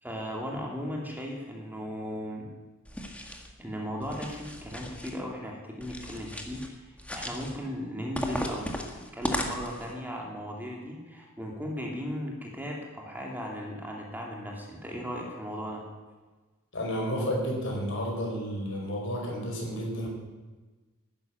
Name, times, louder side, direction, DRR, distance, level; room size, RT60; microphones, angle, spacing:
voice 1, 0.0-2.5 3.6-15.8, equal, 10° right, -1 dB, 2.6 m, -37 dB
sound 1, 2.8-3.5 4.0-5.1 5.8-6.7 7.0-7.6 8.1-9.9, equal, 5° left, 1.7 m, -36 dB
voice 2, 16.7-20.1, equal, 65° left, -1 dB, 5.3 m, -31 dB
12.0 x 11.0 x 9.4 m, 1.3 s
head